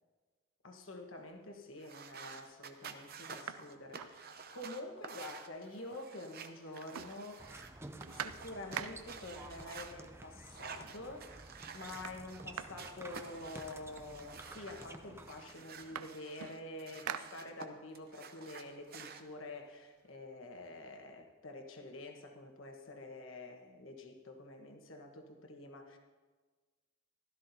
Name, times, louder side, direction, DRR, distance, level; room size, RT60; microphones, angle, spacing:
voice 1, 0.6-7.7 8.1-11.3 11.7-26.0, left 2 dB, 60° left, 3 dB, 1.3 m, -48 dB
sound 1, 1.3-1.8 2.3-2.4 2.7-4.8 5.1-5.2 5.5-6.3 6.6-9.3 10.3-10.4 10.7-11.2 11.5-13.9 14.7-14.8 15.1-17.9 18.3-20.1, right 8 dB, 85° right, 0.5 m, -47 dB
sound 2, 1.8-9.9 10.4-12.4 12.8-14.9 15.3-17.7 17.9-19.2, right 6 dB, 45° right, 0.7 m, -51 dB
sound 3, 7.4-15.7, right 2 dB, 10° right, 0.5 m, -52 dB
16.0 x 13.0 x 2.8 m, 1.4 s
head